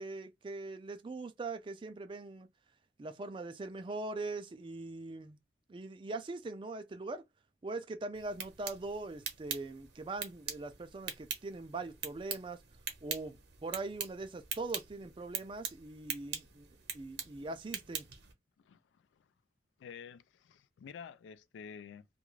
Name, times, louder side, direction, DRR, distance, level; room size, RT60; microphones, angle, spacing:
voice 1, 0.0-2.5 3.0-5.4 5.7-7.2 7.6-12.6 13.0-13.4 13.6-16.7 16.9-18.1, right 3 dB, 25° right, 0.3 m, -41 dB
sound 1, 8.1-18.3, right 7 dB, 65° right, 0.8 m, -43 dB
voice 2, 18.6-19.3 19.8-22.1, left 6 dB, 90° left, 0.3 m, -50 dB
2.4 x 2.3 x 3.1 m
head